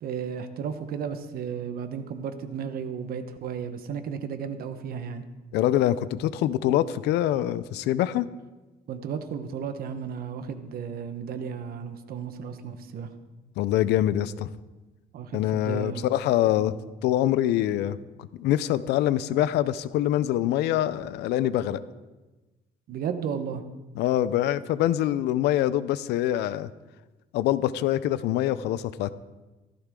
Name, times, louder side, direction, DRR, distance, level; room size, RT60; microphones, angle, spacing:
voice 1, 0.0-5.2 8.9-13.1 15.1-16.0 16.4-16.7 22.9-23.6, right 7 dB, 60° right, 9 dB, 1.3 m, -34 dB
voice 2, 5.5-8.3 13.6-14.5 15.3-16.8 17.0-18.0 18.4-21.8 24.0-26.7 27.3-29.1, left 12 dB, 85° left, 16 dB, 0.6 m, -24 dB
15.5 x 14.5 x 3.8 m, 1.2 s
cardioid pair, 110°, 17 cm